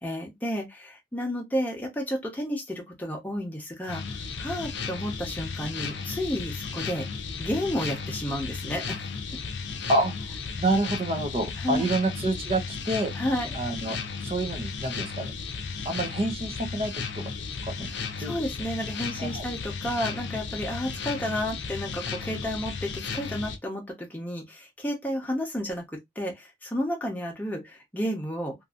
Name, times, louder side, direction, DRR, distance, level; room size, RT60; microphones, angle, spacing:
voice 1, 0.0-7.1 7.4-9.0 11.6-11.9 13.1-13.5 17.9-25.8 26.2-28.5, equal, 10° left, 0.8 m, -31 dB
sound 1, 3.9-23.6, left 5 dB, 80° left, 0.5 m, -35 dB
voice 2, 10.6-13.1 13.5-14.0 14.2-15.3 15.8-17.2 17.6-17.9 18.2-18.3 19.2-19.4, right 2 dB, 30° right, 0.5 m, -28 dB
2.6 x 2.6 x 2.4 m
head